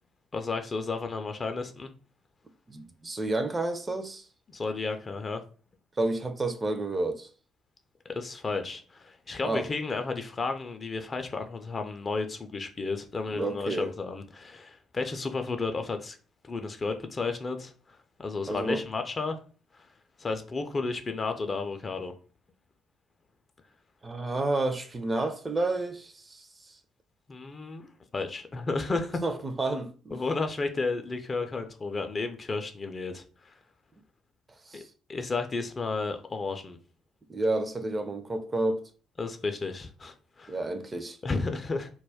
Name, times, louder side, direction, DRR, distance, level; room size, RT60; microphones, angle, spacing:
voice 1, 0.3-1.9 4.5-5.4 8.1-16.2 16.4-19.4 19.7-19.9 20.2-22.1 27.3-27.9 28.1-29.2 30.1-33.5 34.7-34.8 35.1-36.8 39.2-40.6 41.2-41.9, left 3 dB, 35° left, 0.4 m, -32 dB
voice 2, 2.7-4.3 6.0-7.3 9.4-9.7 13.3-13.9 18.5-18.8 24.0-26.8 29.2-30.2 34.7-34.9 37.3-38.8 40.5-41.2, right 2 dB, 25° right, 0.4 m, -30 dB
2.2 x 2.1 x 3.4 m
figure-of-eight pair, 45°, 0 cm